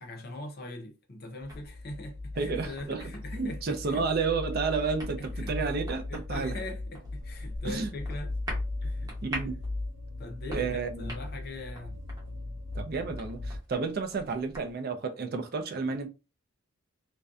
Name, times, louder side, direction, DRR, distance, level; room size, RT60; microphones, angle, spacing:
voice 1, 0.0-4.0 5.2-5.7 6.1-8.3 8.8-9.5 10.2-12.0, left 1 dB, 45° left, 0.5 m, -42 dB
sound 1, 1.4-13.6, left 2 dB, 85° right, 0.8 m, -38 dB
sound 2, 1.5-14.7, equal, 15° right, 0.8 m, -45 dB
voice 2, 2.4-6.6 7.6-7.9 9.2-9.6 10.5-11.1 12.7-16.1, right 4 dB, 45° right, 0.4 m, -31 dB
2.6 x 2.1 x 2.3 m
head